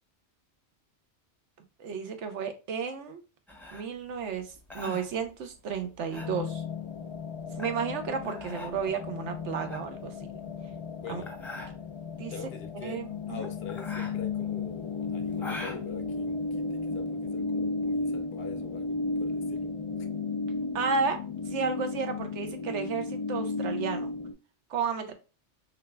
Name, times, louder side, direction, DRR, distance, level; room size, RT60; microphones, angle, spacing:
voice 1, 1.8-3.2 3.7-6.6 7.6-10.1 11.1-11.2 12.2-12.3 12.8-13.5 20.7-21.2 21.5-24.1 24.7-25.1, right 6 dB, 80° right, 1.0 m, -32 dB
sound 1, 3.5-17.0, left 2 dB, ahead, 0.7 m, -44 dB
sound 2, 6.1-24.3, left 3 dB, 45° left, 0.4 m, -34 dB
voice 2, 11.0-11.3 12.3-13.0 13.3-19.7, left 6 dB, 60° left, 0.8 m, -44 dB
3.9 x 3.3 x 2.2 m
omnidirectional pair, 1.2 m